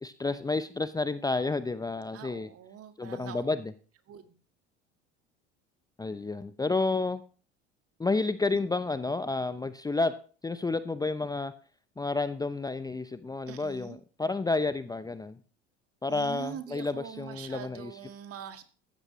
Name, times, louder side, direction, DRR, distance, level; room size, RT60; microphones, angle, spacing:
voice 1, 0.0-2.5 3.0-3.7 6.0-7.2 8.0-10.1 10.4-11.5 12.0-15.4 16.0-17.9, left 3 dB, 10° left, 13 dB, 0.7 m, -30 dB
voice 2, 2.1-3.5 4.1-4.4 13.5-14.0 16.1-18.6, right 9 dB, 45° right, 8 dB, 1.9 m, -43 dB
14.5 x 13.0 x 3.1 m, 0.39 s
hypercardioid pair, 70°, 34 cm